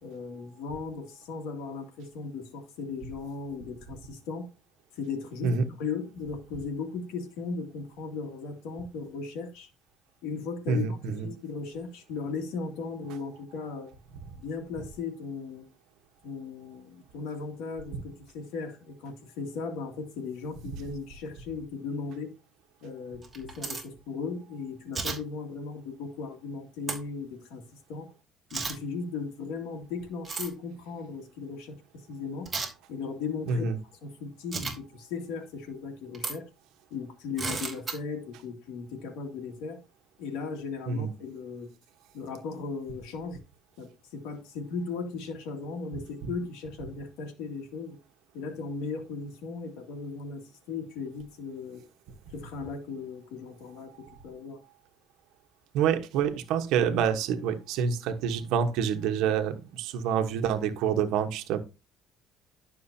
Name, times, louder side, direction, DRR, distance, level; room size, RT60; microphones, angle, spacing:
voice 1, 0.0-4.5 4.9-9.7 10.2-13.9 14.3-15.7 16.2-22.3 22.8-28.1 28.5-32.5 32.9-33.7 34.0-36.5 36.9-39.8 40.2-41.7 42.1-43.4 43.8-48.0 48.3-51.8 52.3-54.6, left 4 dB, 80° left, 2.2 m, -37 dB
voice 2, 10.7-11.3 33.5-33.8 40.9-41.1 55.7-61.6, right 7 dB, 75° right, 1.1 m, -27 dB
sound 1, 23.2-23.8 24.9-25.2 26.9-27.0 28.5-28.7 30.2-30.5 32.5-32.7 34.5-34.7 36.1-36.3 37.4-37.9, right 4 dB, 15° right, 2.9 m, -32 dB
11.5 x 6.2 x 2.7 m
cardioid pair, 120°, 0 cm